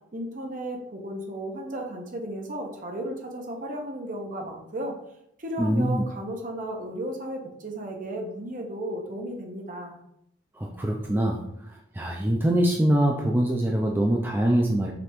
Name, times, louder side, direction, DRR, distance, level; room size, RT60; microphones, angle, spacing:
voice 1, 0.1-5.0 5.4-10.0, right 1 dB, 45° right, 2 dB, 0.8 m, -34 dB
voice 2, 5.6-6.0 10.5-14.9, right 1 dB, 10° right, 0 dB, 0.4 m, -24 dB
5.1 x 3.4 x 2.9 m, 0.76 s
head